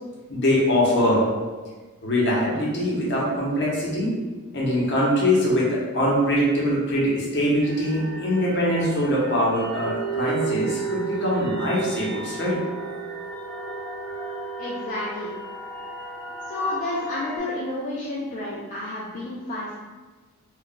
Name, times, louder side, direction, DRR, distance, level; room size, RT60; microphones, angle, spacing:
voice 1, 0.3-1.3 2.0-4.1 4.5-12.6, equal, 55° left, -5 dB, 0.8 m, -22 dB
sound 1, 7.6-17.4, right 4 dB, 5° left, 0.7 m, -33 dB
voice 2, 14.6-15.3 16.5-19.8, left 1 dB, 35° left, -6 dB, 0.4 m, -30 dB
2.4 x 2.2 x 3.8 m, 1.3 s
head